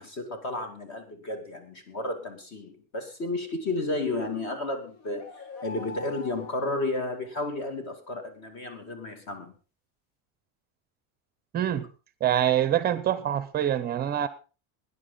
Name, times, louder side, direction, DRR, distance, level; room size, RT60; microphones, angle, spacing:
voice 1, 0.0-5.3 5.6-9.5, left 2 dB, 35° left, 7 dB, 2.3 m, -32 dB
sound 1, 4.8-7.7, left 4 dB, 70° left, 2.3 m, -45 dB
voice 2, 11.5-11.9 12.2-14.3, right 11 dB, 20° right, 13 dB, 0.6 m, -25 dB
19.0 x 10.0 x 3.9 m, 0.34 s
cardioid pair, 180°, 45 cm